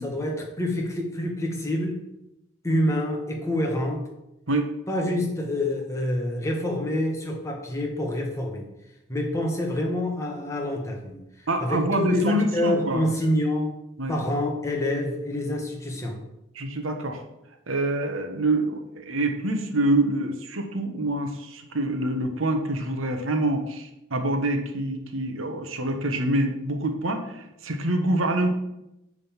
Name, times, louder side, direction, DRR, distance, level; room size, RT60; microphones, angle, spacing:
voice 1, 0.0-2.0 2.6-4.1 4.9-8.7 9.1-11.2 11.6-13.7 14.1-16.2, left 1 dB, 15° left, 0 dB, 1.4 m, -27 dB
voice 2, 11.5-13.1 14.0-14.1 16.5-17.2 17.7-28.5, right 1 dB, 85° right, 5 dB, 1.2 m, -26 dB
9.3 x 3.9 x 7.2 m, 0.87 s
head